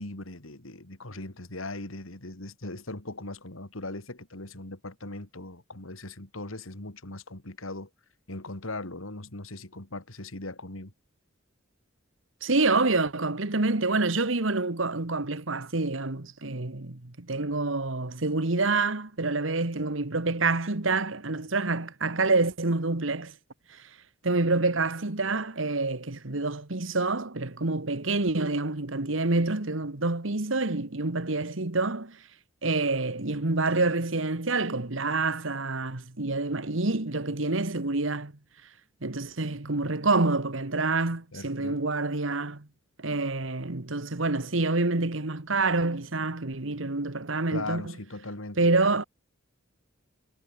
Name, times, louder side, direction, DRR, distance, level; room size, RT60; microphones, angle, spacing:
voice 1, 0.0-7.9 8.3-10.9 41.3-41.8 47.5-48.7, left 2 dB, 85° left, 3.4 m, -39 dB
voice 2, 12.4-23.3 23.7-23.8 24.2-32.2 32.6-38.3 39.0-42.7 43.0-47.8 48.6-49.0, right 3 dB, 70° right, 1.7 m, -27 dB
head